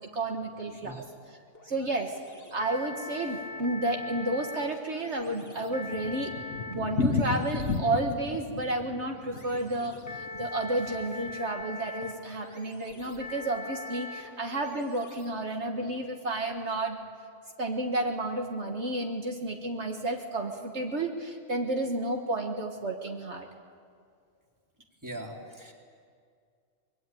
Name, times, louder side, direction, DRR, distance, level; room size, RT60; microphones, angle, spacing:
voice 1, 0.1-1.0 1.6-2.1 2.5-6.3 6.7-17.0 17.6-23.5, right 2 dB, 65° right, 3 dB, 1.8 m, -31 dB
sound 1, 1.1-16.9, left 2 dB, 15° left, 2.3 m, -43 dB
Thunder, 5.1-11.4 11.6-11.7 12.0-12.1 12.3-12.4 13.0-13.3, left 4 dB, 70° left, 1.4 m, -33 dB
voice 2, 25.0-25.7, right 1 dB, 15° right, -1 dB, 3.5 m, -40 dB
25.0 x 22.0 x 9.2 m, 2.2 s
omnidirectional pair, 1.3 m